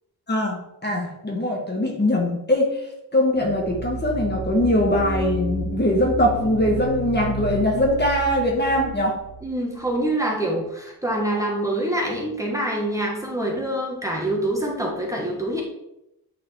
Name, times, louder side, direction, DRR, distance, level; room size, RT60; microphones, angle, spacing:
voice 1, 0.3-2.8 3.1-9.2, left 1 dB, 25° left, 0 dB, 1.3 m, -22 dB
sound 1, 3.4-10.0, right 2 dB, 30° right, 1.6 m, -32 dB
voice 2, 9.4-15.6, right 1 dB, 10° right, -2 dB, 1.2 m, -25 dB
8.7 x 3.9 x 3.3 m, 0.86 s
wide cardioid pair, 115°, 38 cm